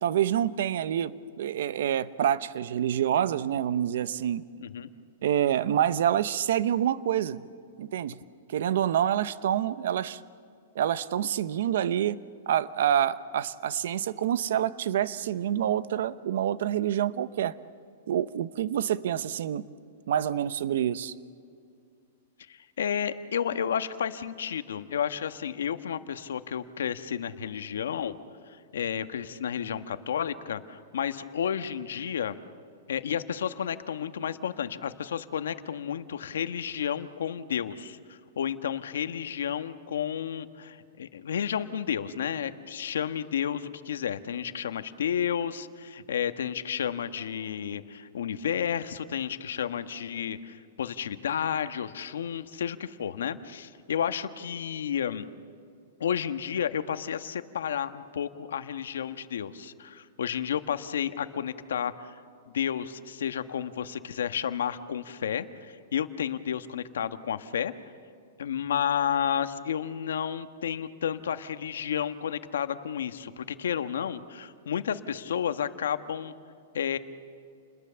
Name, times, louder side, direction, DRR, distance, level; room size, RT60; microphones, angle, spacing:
voice 1, 0.0-4.4 5.2-7.4 7.8-8.1 8.5-10.2 10.7-12.2 12.5-17.6 18.1-19.6 20.1-21.1, right 10 dB, 65° right, 15 dB, 0.8 m, -27 dB
voice 2, 4.6-4.9 22.5-28.1 28.7-32.4 32.9-55.2 56.0-62.1 62.5-67.7 68.4-76.3 76.7-77.0, left 8 dB, 90° left, 10 dB, 1.3 m, -31 dB
29.5 x 21.0 x 7.0 m, 2.3 s
hypercardioid pair, 160°, 0 cm